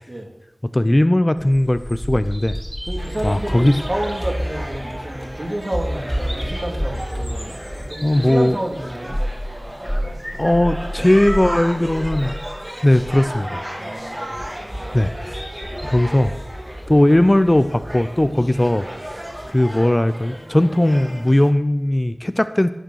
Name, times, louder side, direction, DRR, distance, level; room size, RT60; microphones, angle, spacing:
voice 1, 0.7-2.6 3.2-3.8 8.0-8.6 10.3-12.4 12.8-13.7 14.9-15.4 15.8-16.4 16.9-22.7, left 1 dB, 25° left, 11 dB, 0.6 m, -18 dB
Bird vocalization bird call bird song, 1.4-19.5, equal, 5° right, 2.4 m, -31 dB
voice 2, 2.9-9.2 13.8-14.9 18.3-18.7, right 1 dB, 40° right, 1 dB, 2.6 m, -30 dB
sound 1, 3.0-21.5, equal, 20° right, 2.1 m, -35 dB
15.5 x 6.5 x 6.3 m, 0.95 s
wide cardioid pair, 40°, 0 cm